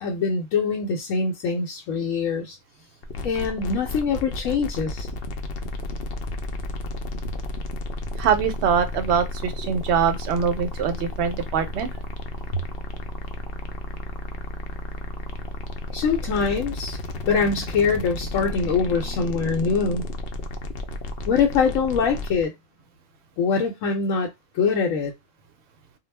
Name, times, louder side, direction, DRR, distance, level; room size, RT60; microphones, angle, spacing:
voice 1, 0.0-2.6 3.2-5.1 15.9-17.0 17.3-20.0 21.3-22.5 23.4-24.3 24.5-25.1, left 5 dB, 85° left, 1.0 m, -23 dB
sound 1, 3.0-22.4, left 1 dB, 65° left, 0.6 m, -32 dB
voice 2, 8.2-11.9, right 7 dB, 65° right, 0.8 m, -23 dB
2.3 x 2.0 x 3.1 m
omnidirectional pair, 1.3 m